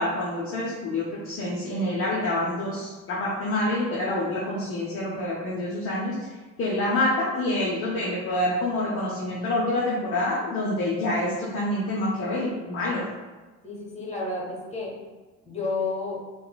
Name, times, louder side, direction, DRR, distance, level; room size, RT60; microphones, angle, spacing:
voice 1, 0.0-6.2 6.6-13.1, left 1 dB, 35° left, -6 dB, 0.7 m, -27 dB
voice 2, 13.6-14.9 15.4-16.2, left 3 dB, 15° left, -4 dB, 1.2 m, -31 dB
3.7 x 2.4 x 2.2 m, 1.3 s
hypercardioid pair, 60°, 39 cm